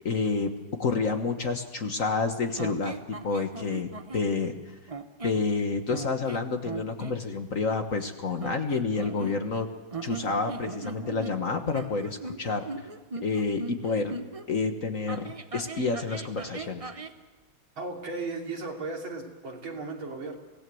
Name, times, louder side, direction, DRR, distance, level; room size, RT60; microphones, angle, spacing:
voice 1, 0.0-0.5 0.8-4.5 5.2-9.7 10.0-12.6 13.2-14.2 14.5-16.9, left 4 dB, 45° left, 6 dB, 1.6 m, -29 dB
sound 1, 2.6-4.3 4.9-5.5 5.9-7.2 8.4-9.6 9.9-14.5 15.1-17.2, right 3 dB, 40° right, 0.5 m, -39 dB
voice 2, 17.8-20.4, right 3 dB, 75° right, 0 dB, 3.8 m, -35 dB
25.5 x 18.0 x 7.7 m, 1.2 s
omnidirectional pair, 2.2 m